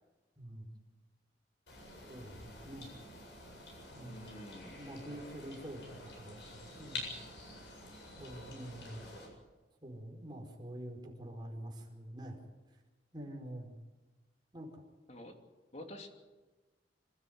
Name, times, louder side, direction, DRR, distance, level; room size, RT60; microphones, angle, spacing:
voice 1, 0.4-0.7 2.1-2.9 3.9-4.3 4.7-7.1 8.2-9.0 9.8-12.4 13.1-13.7 14.5-14.8, right 1 dB, 25° right, 1 dB, 4.8 m, -46 dB
sound 1, 1.7-9.3, left 2 dB, 75° left, 7.8 m, -48 dB
voice 2, 4.0-4.8 15.1-15.4 15.7-16.1, left 1 dB, 40° left, 4 dB, 2.9 m, -48 dB
26.0 x 13.5 x 9.5 m, 1.2 s
head